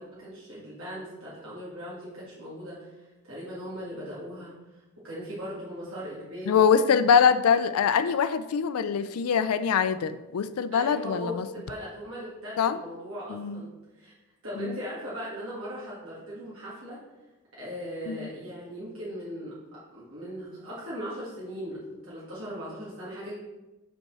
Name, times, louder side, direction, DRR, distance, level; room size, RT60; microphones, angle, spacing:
voice 1, 0.0-4.6 5.0-6.7 10.7-14.1 14.4-17.0 17.6-23.3, equal, 70° right, -9 dB, 1.9 m, -39 dB
voice 2, 6.5-11.5 12.6-12.8 13.3-13.6 14.6-14.7 18.1-18.3, left 7 dB, 85° left, 12 dB, 0.4 m, -23 dB
5.4 x 4.3 x 6.0 m, 1.0 s
head